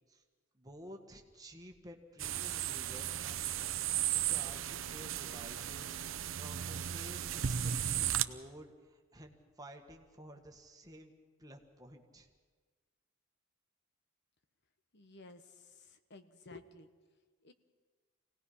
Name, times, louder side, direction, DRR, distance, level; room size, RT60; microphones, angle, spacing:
voice 1, 0.5-3.4 4.2-11.1 11.4-12.3, right 1 dB, 20° right, 2 dB, 1.7 m, -53 dB
sound 1, 2.2-8.2, right 10 dB, 70° right, 0.6 m, -35 dB
voice 2, 14.9-16.9 17.4-17.5, left 3 dB, 55° left, 9 dB, 1.1 m, -54 dB
25.0 x 18.0 x 5.7 m, 1.4 s
head